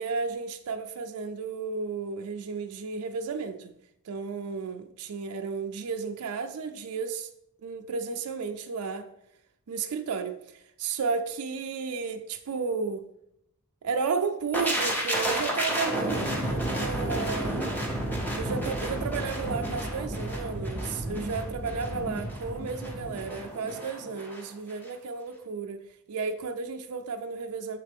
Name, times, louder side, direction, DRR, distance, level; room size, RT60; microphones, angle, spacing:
voice 1, 0.0-3.7 4.1-7.3 7.6-9.1 9.7-13.0 13.8-17.8 18.3-25.8 26.1-27.8, right 5 dB, 80° right, 0.4 m, -33 dB
sound 1, 14.5-24.4 24.7-24.9, right 1 dB, 10° left, 0.8 m, -31 dB
7.3 x 4.1 x 3.4 m
head